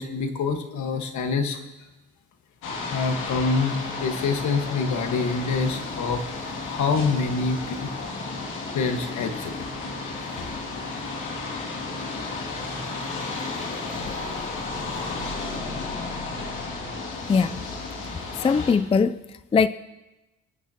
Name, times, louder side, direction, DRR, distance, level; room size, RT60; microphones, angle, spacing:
voice 1, 0.0-1.6 2.9-6.2 6.7-7.9 8.7-9.5 10.3-10.4, left 4 dB, 70° left, 5 dB, 1.6 m, -26 dB
sound 1, 2.6-18.7, left 3 dB, 90° left, 2.6 m, -33 dB
voice 2, 17.3-17.6 18.3-19.7, left 5 dB, 20° left, 13 dB, 0.4 m, -21 dB
25.0 x 9.3 x 3.0 m, 1.0 s
cardioid pair, 90°, 30 cm